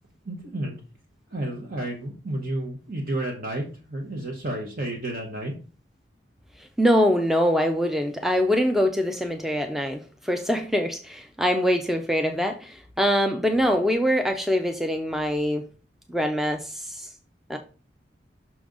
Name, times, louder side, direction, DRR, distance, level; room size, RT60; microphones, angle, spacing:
voice 1, 0.2-0.8 1.3-5.5, right 1 dB, 50° right, 1.1 m, -31 dB
voice 2, 6.8-15.7 16.1-17.1 17.5-17.6, equal, ahead, 0.5 m, -24 dB
6.0 x 5.0 x 3.9 m
head